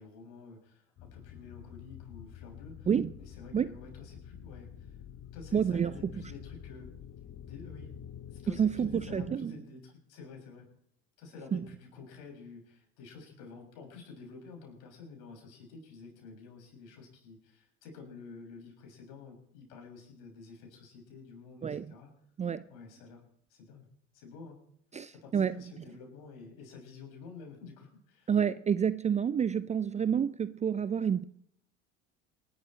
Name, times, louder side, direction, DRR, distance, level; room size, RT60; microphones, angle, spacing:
voice 1, 0.0-2.9 3.2-5.0 5.3-6.9 7.4-7.9 8.3-10.7 11.2-22.1 22.7-23.2 23.5-23.9 24.1-24.6 25.1-28.3 30.0-30.1, left 4 dB, 60° left, 6.8 m, -50 dB
sound 1, 1.0-9.4, left 9 dB, 35° left, 1.1 m, -48 dB
voice 2, 5.5-5.9 8.6-9.5 11.5-11.6 21.6-21.9 22.4-22.6 24.9-25.6 28.3-31.2, right 7 dB, 20° right, 0.6 m, -28 dB
27.5 x 12.0 x 3.3 m
figure-of-eight pair, 70°, 37 cm